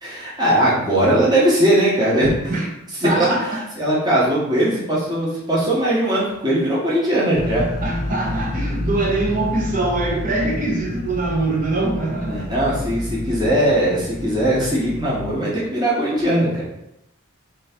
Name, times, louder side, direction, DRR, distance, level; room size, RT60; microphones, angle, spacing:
voice 1, 0.0-2.6 3.0-7.7 12.2-16.6, right 1 dB, 20° right, -7 dB, 1.0 m, -19 dB
voice 2, 3.0-3.6 7.8-12.5, right 2 dB, 40° right, -1 dB, 0.8 m, -23 dB
sound 1, 7.3-15.4, left 1 dB, 40° left, 0.6 m, -29 dB
3.3 x 3.0 x 4.3 m, 0.85 s
head